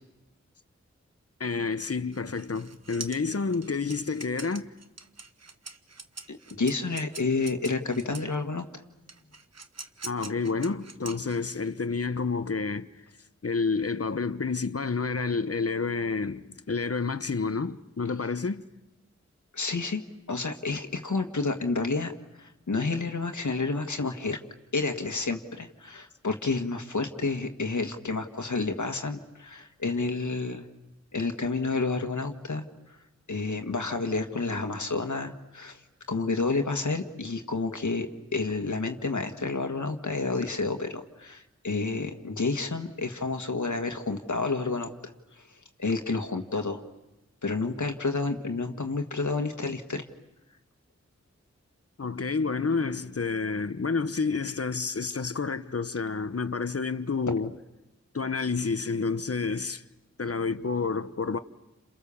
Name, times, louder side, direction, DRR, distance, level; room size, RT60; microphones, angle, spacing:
voice 1, 1.4-4.7 10.0-12.9 13.4-18.6 52.0-57.5 58.1-59.8 60.2-61.4, left 4 dB, 55° left, 1.1 m, -29 dB
sound 1, 2.1-8.4 9.1-11.7, right 4 dB, 60° right, 1.2 m, -44 dB
voice 2, 6.3-8.7 19.5-20.0 20.3-22.1 22.4-24.4 24.7-30.7 31.1-32.6 32.9-33.0 33.3-35.8 36.1-44.9 45.8-46.8 47.4-50.0, left 3 dB, 80° left, 1.8 m, -30 dB
29.5 x 27.5 x 7.1 m
wide cardioid pair, 50°, 29 cm